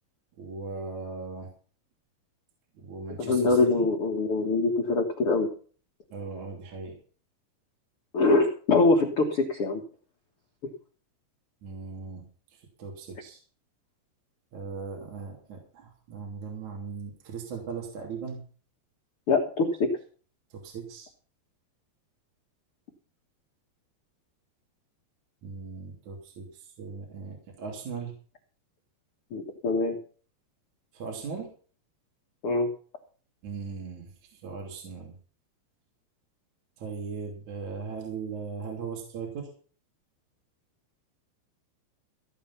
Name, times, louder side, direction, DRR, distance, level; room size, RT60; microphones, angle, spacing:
voice 1, 0.4-1.5 2.7-3.9 6.1-7.0 11.6-12.2 12.6-13.4 14.5-18.4 20.5-21.1 25.4-28.1 30.9-31.5 33.4-35.1 36.8-39.5, right 5 dB, 45° right, 0 dB, 3.9 m, -38 dB
voice 2, 3.2-5.5 8.1-9.8 19.3-19.9 29.3-30.0 32.4-32.7, left 3 dB, 85° left, 2 dB, 1.2 m, -24 dB
15.5 x 8.7 x 5.8 m, 0.42 s
omnidirectional pair, 5.2 m